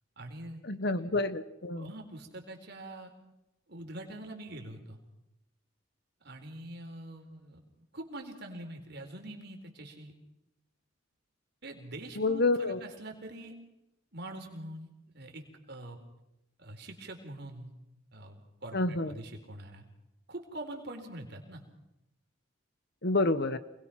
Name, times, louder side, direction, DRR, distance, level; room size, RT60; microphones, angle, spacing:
voice 1, 0.2-0.6 0.9-1.0 1.8-3.1 3.7-5.0 6.2-7.6 7.9-10.1 11.6-13.5 14.1-16.0 16.6-17.7 18.1-19.8 20.3-21.6, right 1 dB, 50° right, 3 dB, 4.3 m, -44 dB
voice 2, 0.7-1.9 12.2-12.8 18.7-19.1 23.0-23.6, left 2 dB, 50° left, 13 dB, 1.2 m, -28 dB
28.0 x 21.0 x 5.9 m, 0.90 s
head